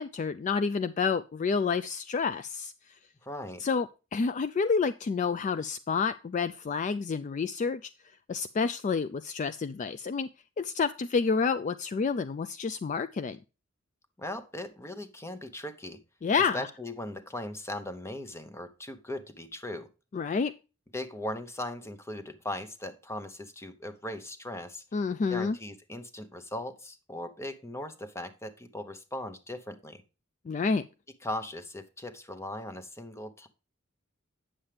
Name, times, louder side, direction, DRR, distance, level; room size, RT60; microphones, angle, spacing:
voice 1, 0.0-2.7 3.6-7.9 8.3-10.3 10.6-13.4 16.2-16.7 20.1-20.5 24.9-25.6 30.5-30.8, left 5 dB, 35° left, 0.3 m, -29 dB
voice 2, 3.2-3.6 14.2-16.0 16.4-19.9 20.9-24.8 25.3-30.0 31.2-33.5, left 1 dB, 15° left, 0.8 m, -39 dB
8.7 x 7.2 x 3.3 m
head